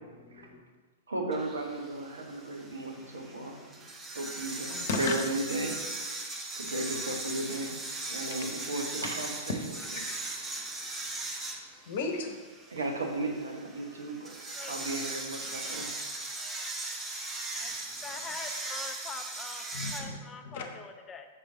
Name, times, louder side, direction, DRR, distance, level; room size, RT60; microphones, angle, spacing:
voice 1, 0.2-0.6 1.8-3.9 4.9-5.2 9.7-10.5 11.9-12.4 17.9-18.3 19.7-20.2 20.4-20.6, left 3 dB, 55° left, 5 dB, 0.9 m, -38 dB
voice 2, 1.1-3.6 4.1-5.7 6.5-7.8 8.1-9.6 12.7-14.4 14.7-15.9, right 2 dB, 75° right, 2 dB, 1.1 m, -35 dB
sound 1, 1.3-20.0, right 2 dB, 15° right, 1.0 m, -39 dB
voice 3, 17.5-21.3, left 5 dB, 20° left, 7 dB, 0.5 m, -44 dB
6.1 x 5.3 x 3.8 m, 1.4 s
figure-of-eight pair, 100°, 0 cm